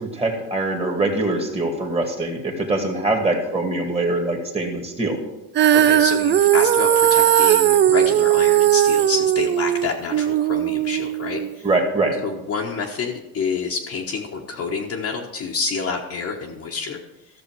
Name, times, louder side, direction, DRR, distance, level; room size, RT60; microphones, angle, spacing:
voice 1, 0.0-5.2 11.6-12.2, right 2 dB, 15° right, 3 dB, 2.0 m, -23 dB
Female singing, 5.5-11.8, right 11 dB, 30° right, 0.4 m, -18 dB
voice 2, 5.7-11.7 12.2-17.0, left 5 dB, 40° left, -2 dB, 1.2 m, -28 dB
14.0 x 6.7 x 4.7 m, 1.0 s
cardioid pair, 115°, 38 cm